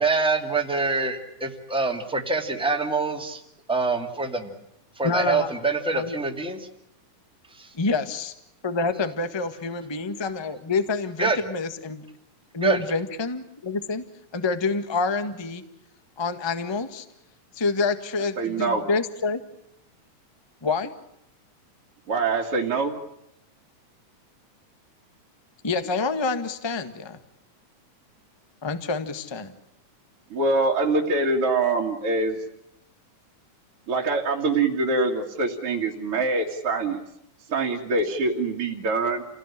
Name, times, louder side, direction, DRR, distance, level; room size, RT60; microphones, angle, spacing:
voice 1, 0.0-3.4 3.7-4.5 5.0-6.6 7.6-7.7 11.2-11.4 12.6-12.8, right 4 dB, ahead, 3 dB, 2.1 m, -25 dB
voice 2, 5.0-5.5 5.9-6.1 7.8-8.3 8.6-12.0 12.5-14.0 14.3-15.6 16.2-17.0 17.5-19.4 20.6-20.9 25.6-27.2 28.6-29.5, left 4 dB, 20° left, 9 dB, 0.8 m, -27 dB
voice 3, 18.4-18.8 22.1-22.9 30.3-32.4 33.9-37.0 37.5-39.2, right 3 dB, 45° right, -2 dB, 3.0 m, -24 dB
29.5 x 18.0 x 9.9 m, 0.79 s
omnidirectional pair, 3.6 m